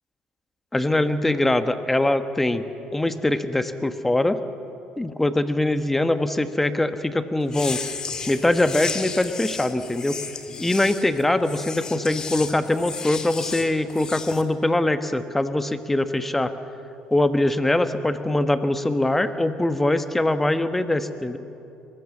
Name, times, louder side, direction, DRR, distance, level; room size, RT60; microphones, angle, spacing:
voice 1, 0.7-2.6 2.9-4.4 5.0-7.8 8.3-10.2 10.6-16.5 17.1-21.4, left 1 dB, 10° left, 10 dB, 1.2 m, -22 dB
sound 1, 7.5-14.4, left 5 dB, 35° left, 1.8 m, -34 dB
22.0 x 20.0 x 7.3 m, 2.9 s
supercardioid pair, 95°, 2 cm